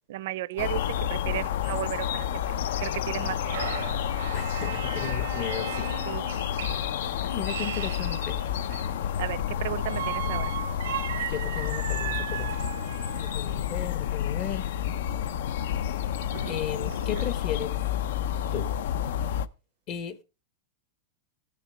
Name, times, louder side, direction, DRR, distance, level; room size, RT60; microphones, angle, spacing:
voice 1, 0.1-0.8 1.1-2.5 2.8-3.7 6.1-6.2 9.2-10.5, right 14 dB, 60° right, 0.5 m, -34 dB
sound 1, 0.6-19.5, left 9 dB, 70° left, 0.5 m, -30 dB
sound 2, 0.6-0.7 0.9-1.0 1.5-1.6 2.9-9.1 9.8-13.5 15.2-15.3 15.8-15.9 16.2-17.3, right 11 dB, 90° right, 0.8 m, -37 dB
voice 2, 4.3-5.9 7.2-8.4 11.2-12.8 13.1-14.7 16.4-17.8 18.5-18.7 19.9-20.2, left 8 dB, 35° left, 0.8 m, -35 dB
15.5 x 6.6 x 3.2 m
supercardioid pair, 155°, 0 cm